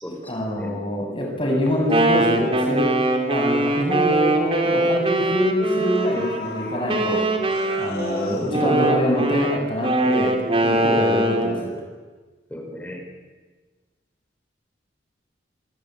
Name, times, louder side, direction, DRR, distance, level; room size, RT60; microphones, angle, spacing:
voice 1, 0.2-2.9 3.3-7.2 7.8-10.3 10.6-11.7, equal, 30° left, 0 dB, 7.9 m, -24 dB
Wind instrument woodwind instrument, 1.7-6.4 6.9-11.6, right 1 dB, 30° right, 3.2 m, -22 dB
sound 1, 5.8-9.7 10.1-10.2, left 3 dB, 50° left, 6.7 m, -38 dB
voice 2, 12.5-13.0, left 1 dB, 10° left, 2 dB, 5.5 m, -35 dB
26.5 x 22.5 x 9.6 m, 1.4 s
head